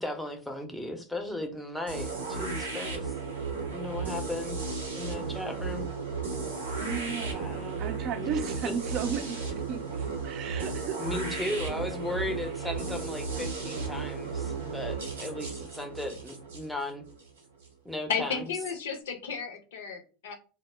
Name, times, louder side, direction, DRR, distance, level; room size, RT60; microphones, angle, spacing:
voice 1, 0.0-3.1 3.7-4.6 4.9-5.9 7.3-7.8 8.1-8.3 11.0-17.0 17.8-18.4, left 2 dB, ahead, 4 dB, 0.6 m, -36 dB
sound 1, 1.9-17.7, right 4 dB, 90° right, 0.6 m, -34 dB
voice 2, 6.8-11.2, right 7 dB, 50° right, 9 dB, 0.4 m, -35 dB
voice 3, 18.1-20.3, left 6 dB, 75° left, 4 dB, 0.5 m, -33 dB
2.0 x 2.0 x 3.2 m, 0.37 s
hypercardioid pair, 85°, 0 cm